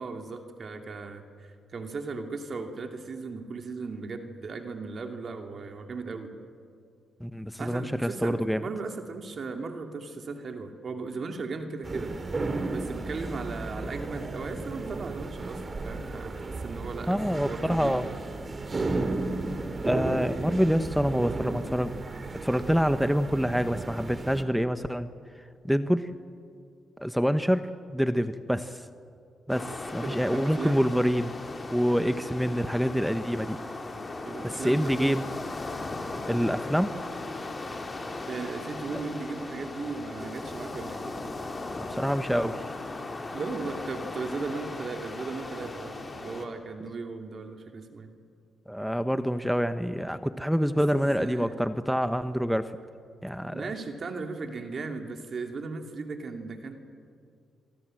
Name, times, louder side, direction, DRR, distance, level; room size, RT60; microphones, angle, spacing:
voice 1, 0.0-6.3 7.6-12.1 12.7-18.1 30.0-30.8 34.2-35.2 38.3-41.0 43.3-48.1 50.9-51.6 53.5-56.8, right 4 dB, 55° right, 4 dB, 2.8 m, -37 dB
voice 2, 7.2-8.6 17.1-18.1 18.9-19.1 19.8-22.0 22.4-25.1 25.6-26.1 27.0-27.6 27.9-28.8 29.5-31.3 31.7-33.6 34.4-35.2 36.2-36.9 41.9-42.6 48.7-52.7 53.2-53.7, equal, ahead, 11 dB, 1.0 m, -26 dB
sound 1, 11.8-24.4, right 3 dB, 40° right, 2.8 m, -34 dB
sound 2, 29.5-46.5, left 2 dB, 35° left, 3.6 m, -37 dB
28.0 x 23.5 x 7.8 m, 2.3 s
cardioid pair, 70°, 0 cm